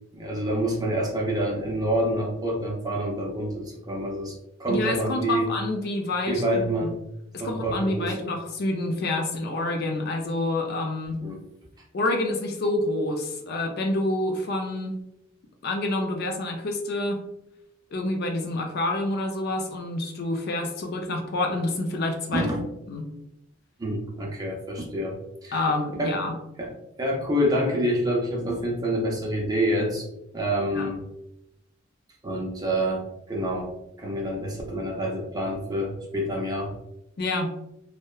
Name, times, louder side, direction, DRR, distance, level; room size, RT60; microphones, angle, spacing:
voice 1, 0.1-5.5 6.3-7.0 7.4-8.2 11.2-11.4 22.3-22.6 23.8-25.2 25.4-25.6 26.0-26.2 26.6-26.7 27.0-30.1 30.3-31.0 32.2-33.7 34.0-36.7, equal, 20° right, -2 dB, 0.5 m, -27 dB
voice 2, 4.7-6.4 6.8-6.9 7.4-11.2 11.9-14.9 15.6-17.2 17.9-22.5 22.9-23.1 25.5-26.3 30.7-30.9 37.2-37.5, left 2 dB, 55° left, 3 dB, 0.4 m, -27 dB
2.7 x 2.1 x 2.2 m, 0.83 s
head